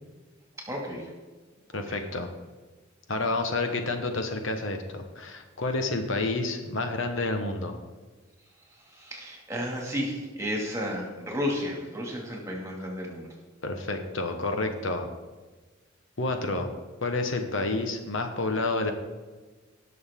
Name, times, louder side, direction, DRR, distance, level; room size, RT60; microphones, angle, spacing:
voice 1, 0.7-1.1 8.9-13.3, equal, 15° right, -1 dB, 2.2 m, -32 dB
voice 2, 1.7-2.3 3.1-7.8 13.6-15.1 16.2-16.7 17.0-18.9, left 2 dB, 70° left, 5 dB, 1.1 m, -29 dB
19.0 x 6.3 x 3.7 m, 1.3 s
head